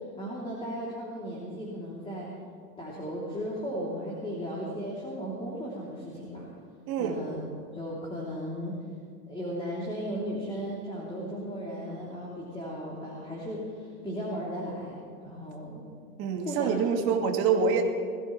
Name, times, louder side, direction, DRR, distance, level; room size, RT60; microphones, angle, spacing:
voice 1, 0.2-2.3 2.8-6.5 7.0-7.4 7.7-8.8 9.3-15.8 16.4-17.1, equal, 10° left, -5 dB, 3.2 m, -36 dB
voice 2, 6.9-7.3 16.2-17.8, right 6 dB, 50° right, 3 dB, 2.2 m, -26 dB
22.0 x 15.5 x 3.3 m, 2.1 s
hypercardioid pair, 110°, 46 cm